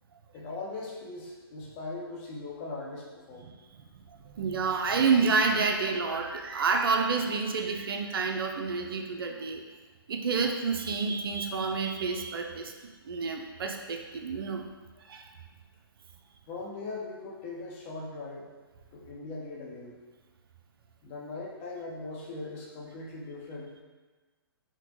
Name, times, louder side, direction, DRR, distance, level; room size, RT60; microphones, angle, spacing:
voice 1, 0.3-3.5 16.5-18.5 18.9-20.0 21.0-23.8, left 3 dB, 30° left, -3 dB, 0.7 m, -40 dB
voice 2, 3.9-9.6 10.1-12.7 13.0-14.7 15.0-15.3, right 4 dB, 65° right, 3 dB, 0.5 m, -29 dB
4.3 x 2.1 x 3.0 m, 1.3 s
hypercardioid pair, 135°, 13 cm